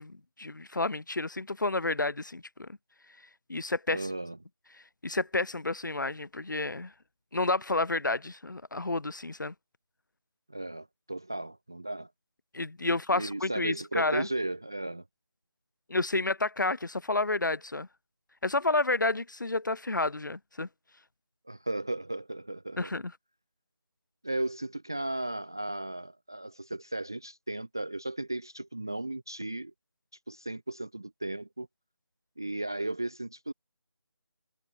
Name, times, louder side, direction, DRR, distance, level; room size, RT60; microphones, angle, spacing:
voice 1, 0.0-2.7 3.5-4.1 5.0-6.9 7.3-9.5 12.5-14.3 15.9-17.9 18.4-20.7 22.8-23.1, left 2 dB, 55° left, 2.8 m, -30 dB
voice 2, 3.9-4.4 10.5-12.1 12.9-15.0 21.5-22.9 24.2-29.7 30.3-31.7 32.4-33.5, right 2 dB, 10° right, 0.4 m, -35 dB
figure-of-eight pair, 165°, 12 cm